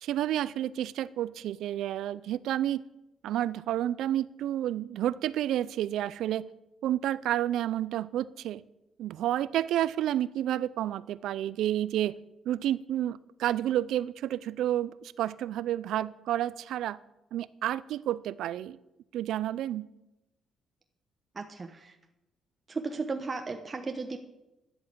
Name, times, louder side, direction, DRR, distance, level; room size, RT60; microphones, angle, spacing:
voice 1, 0.0-2.8 3.2-6.5 6.8-8.6 9.0-12.2 12.5-17.0 17.3-18.8 19.1-19.9, right 12 dB, 80° right, 19 dB, 0.4 m, -30 dB
voice 2, 21.3-21.9 22.7-24.2, right 4 dB, 30° right, 5 dB, 1.0 m, -35 dB
11.0 x 7.9 x 8.3 m, 0.95 s
cardioid pair, 90°, 0 cm